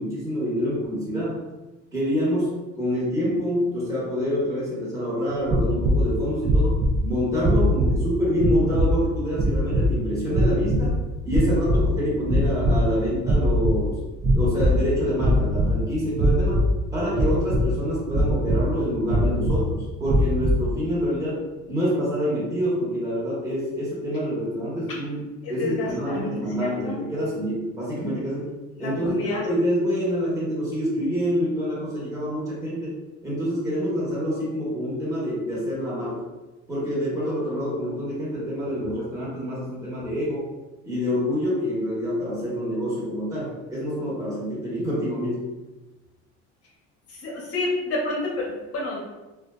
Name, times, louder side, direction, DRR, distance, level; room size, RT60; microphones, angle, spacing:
voice 1, 0.0-1.4 1.9-14.0 14.3-16.7 16.9-28.5 28.8-33.0 33.2-36.2 36.7-40.5 40.8-45.4, equal, 10° right, -8 dB, 1.0 m, -26 dB
sound 1, 5.4-6.1 6.4-7.0 7.4-8.0 8.4-9.0 9.3-9.9 10.3-11.0 11.3-11.9 12.2-12.9 13.2-13.8 14.2-14.8 15.2-15.7 16.1-16.7 17.1-17.7 18.1-18.7 19.1-19.6 20.0-20.6, equal, 30° right, 0.4 m, -21 dB
voice 2, 25.4-26.3 26.8-27.0 28.8-29.4 47.1-49.0, left 2 dB, 45° left, -3 dB, 0.7 m, -29 dB
2.5 x 2.2 x 2.2 m, 1.1 s
supercardioid pair, 100°, 32 cm